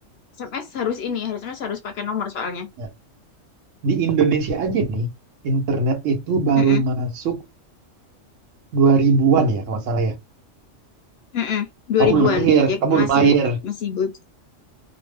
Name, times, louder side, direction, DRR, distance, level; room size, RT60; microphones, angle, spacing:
voice 1, 0.4-2.7 6.6-6.8 11.3-13.4 13.6-14.1, left 8 dB, 65° left, 0.7 m, -25 dB
voice 2, 3.8-5.1 5.4-7.4 8.7-10.1 12.0-13.6, right 5 dB, 75° right, 1.1 m, -19 dB
2.9 x 2.0 x 3.3 m
omnidirectional pair, 1.3 m